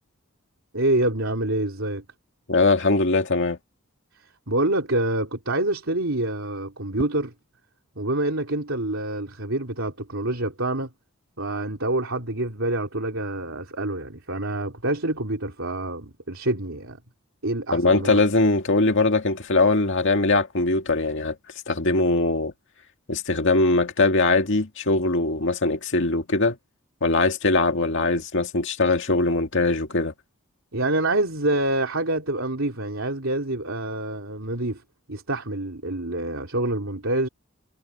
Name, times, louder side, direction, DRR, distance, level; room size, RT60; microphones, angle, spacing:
voice 1, 0.7-2.0 4.5-7.3 8.0-10.9 11.4-17.0 17.4-18.2 30.7-34.8 35.1-37.3, right 2 dB, 65° right, 3.9 m, -26 dB
voice 2, 2.5-3.6 17.7-21.4 21.7-22.5 23.1-26.6 27.0-30.1, left 3 dB, 60° left, 2.1 m, -21 dB
head